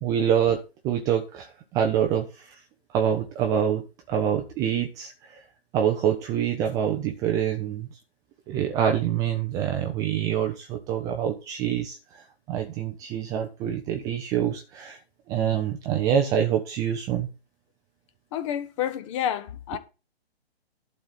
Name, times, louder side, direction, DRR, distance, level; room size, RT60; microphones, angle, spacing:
voice 1, 0.0-2.6 2.9-5.4 5.7-8.0 8.5-15.0 15.3-17.3, right 9 dB, 10° right, 0.5 m, -26 dB
voice 2, 18.3-19.8, left 10 dB, 30° left, 1.0 m, -29 dB
11.5 x 4.1 x 7.2 m
figure-of-eight pair, 130°, 31 cm